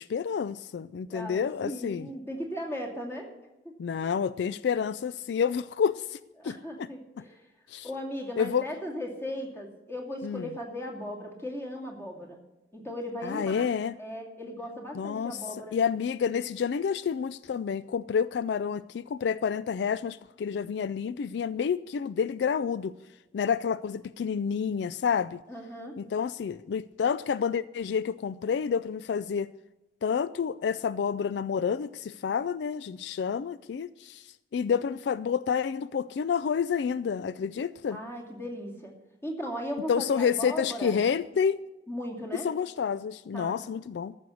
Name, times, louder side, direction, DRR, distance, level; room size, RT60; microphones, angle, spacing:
voice 1, 0.0-2.1 3.8-6.2 6.4-6.9 7.7-7.9 8.4-8.6 10.2-10.5 13.2-14.0 14.9-15.4 15.7-22.9 23.3-25.4 26.0-29.5 30.0-34.3 34.5-38.0 39.9-41.6 42.4-44.2, left 7 dB, 70° left, 16 dB, 0.3 m, -29 dB
voice 2, 1.1-3.3 3.6-4.1 6.4-7.4 7.8-12.4 12.7-13.7 14.0-15.7 25.5-26.0 37.9-38.9 39.2-40.9 41.9-42.5 43.3-43.6, equal, 15° left, 0 dB, 2.4 m, -37 dB
14.0 x 6.4 x 8.3 m, 1.0 s
head